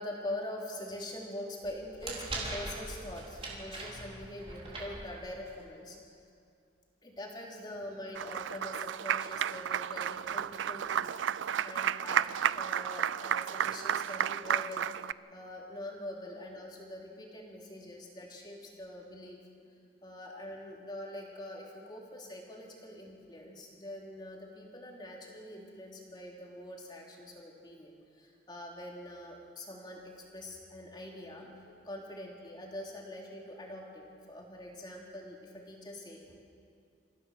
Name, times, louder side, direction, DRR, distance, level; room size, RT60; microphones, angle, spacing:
voice 1, 0.0-6.0 7.0-12.3 12.6-15.0 15.3-19.4 20.0-36.4, left 1 dB, 25° left, -1 dB, 3.1 m, -44 dB
sound 1, 1.6-5.6, right 2 dB, 30° right, 3.9 m, -41 dB
Applause, 8.2-15.1, right 9 dB, 90° right, 0.4 m, -32 dB
28.0 x 15.5 x 6.4 m, 2.4 s
head